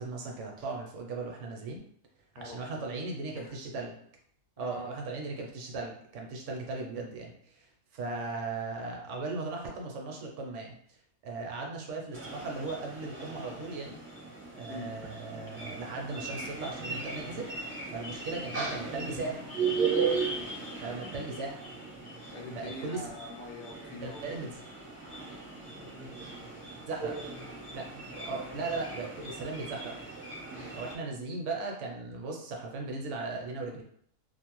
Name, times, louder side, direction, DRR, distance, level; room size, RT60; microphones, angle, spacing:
voice 1, 0.0-1.8 2.3-4.0 4.6-10.8 11.2-13.9 14.6-19.6 20.8-21.7 22.5-23.0 24.0-24.6 26.9-27.2 27.7-30.0 30.7-33.8, right 3 dB, 70° right, 1 dB, 0.9 m, -37 dB
voice 2, 2.4-2.8 3.4-3.6 4.6-4.9 14.7-14.9 22.3-24.2, left 2 dB, 65° left, 2 dB, 0.8 m, -43 dB
sound 1, 12.1-31.0, right 4 dB, 20° right, 0.3 m, -37 dB
2.5 x 2.1 x 2.9 m, 0.65 s
omnidirectional pair, 1.4 m